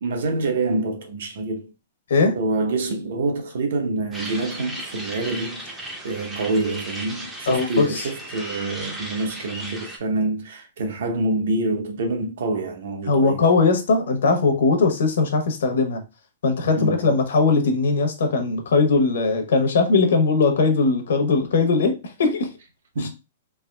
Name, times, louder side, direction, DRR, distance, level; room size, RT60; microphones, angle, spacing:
voice 1, 0.0-1.7 2.3-13.4 16.7-17.1 22.9-23.1, right 2 dB, 55° right, 0.7 m, -26 dB
sound 1, 4.1-10.0, right 1 dB, 5° right, 0.5 m, -35 dB
voice 2, 7.5-8.1 13.1-16.0 16.4-22.5 23.0-23.1, left 4 dB, 70° left, 0.8 m, -20 dB
3.5 x 2.9 x 2.2 m
hypercardioid pair, 180°, 0 cm